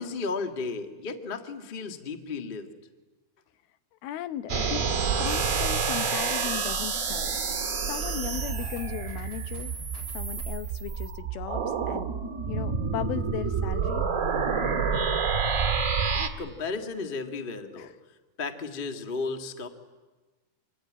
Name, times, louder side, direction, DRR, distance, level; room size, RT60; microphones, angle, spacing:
voice 1, 0.0-2.7 16.1-17.9 18.4-19.7, left 4 dB, 70° left, 5 dB, 0.5 m, -34 dB
voice 2, 4.0-4.9 5.2-7.4 7.8-9.8 10.1-12.2 12.5-14.1 17.8-17.9, left 12 dB, 90° left, 11 dB, 2.9 m, -36 dB
sound 1, 4.5-16.3, right 5 dB, 35° right, 1.4 m, -28 dB
sound 2, 5.0-10.4, equal, 35° left, 5.7 m, -54 dB
26.0 x 23.5 x 8.9 m, 1.3 s
omnidirectional pair, 4.2 m